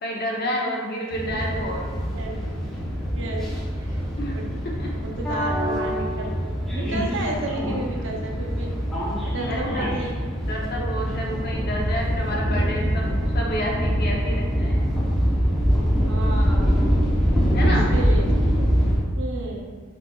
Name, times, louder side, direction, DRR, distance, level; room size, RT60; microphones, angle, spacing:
voice 1, 0.0-1.8 4.2-4.4 4.8-4.9 9.5-9.9 10.5-14.7 17.5-17.9, equal, 45° left, -2 dB, 0.8 m, -29 dB
sound 1, 1.1-19.0, equal, ahead, 0.8 m, -24 dB
voice 2, 1.5-1.8 2.1-2.3 3.1-3.5 3.8-4.0 4.3-4.5 5.0-6.4 6.7-8.8 9.3-10.2 12.4-12.8 14.2-14.5 16.0-16.8 17.6-18.3 19.2-19.7, right 2 dB, 60° right, 0 dB, 0.7 m, -32 dB
5.2 x 4.1 x 2.3 m, 1.5 s
head